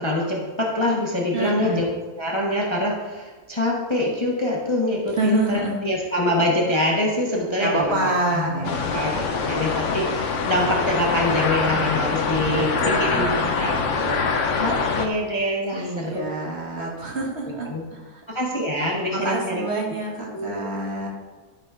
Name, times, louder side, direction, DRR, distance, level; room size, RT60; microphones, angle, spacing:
voice 1, 0.0-1.8 2.2-13.3 13.5-14.2 14.6-16.3 17.4-17.8 18.3-19.6 20.3-20.6, left 1 dB, 20° left, -3 dB, 1.1 m, -25 dB
voice 2, 1.3-1.9 5.1-5.8 7.6-8.7 12.5-13.9 15.7-18.2 19.1-21.1, right 2 dB, 45° right, -1 dB, 1.9 m, -27 dB
sound 1, 8.6-15.1, left 4 dB, 55° left, 1.1 m, -24 dB
12.0 x 4.1 x 5.0 m, 1.3 s
omnidirectional pair, 1.6 m